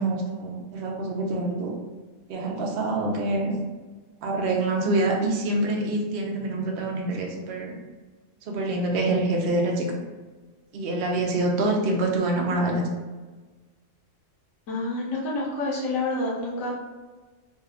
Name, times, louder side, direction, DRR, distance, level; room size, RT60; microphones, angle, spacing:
voice 1, 0.0-1.7 2.3-3.6 4.2-7.8 8.5-10.0 10.7-12.8, right 2 dB, 60° right, 0 dB, 0.7 m, -26 dB
voice 2, 14.7-16.7, left 2 dB, 80° left, -4 dB, 1.2 m, -28 dB
3.1 x 2.3 x 3.4 m, 1.3 s
omnidirectional pair, 1.4 m